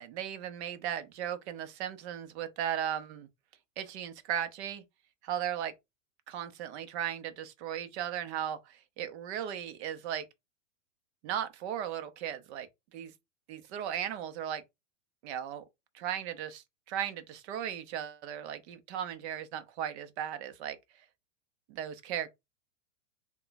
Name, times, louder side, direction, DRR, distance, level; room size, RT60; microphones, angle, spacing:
voice 1, 0.0-3.3 3.8-4.8 5.2-5.7 6.3-10.2 11.2-13.1 13.5-14.6 15.2-15.6 15.9-20.8 21.7-22.3, right 10 dB, 55° right, 0.8 m, -36 dB
3.6 x 2.3 x 3.9 m
hypercardioid pair, 125°, 39 cm